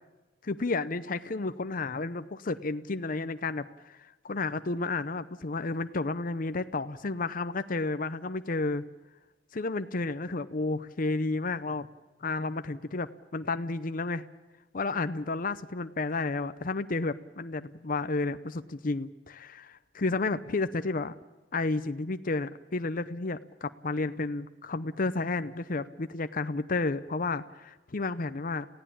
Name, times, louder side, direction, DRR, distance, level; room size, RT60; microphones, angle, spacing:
voice 1, 0.4-8.8 9.5-11.9 12.2-14.2 14.7-21.1 21.5-28.7, left 3 dB, 50° left, 11 dB, 0.7 m, -32 dB
29.0 x 16.0 x 8.7 m, 1.2 s
head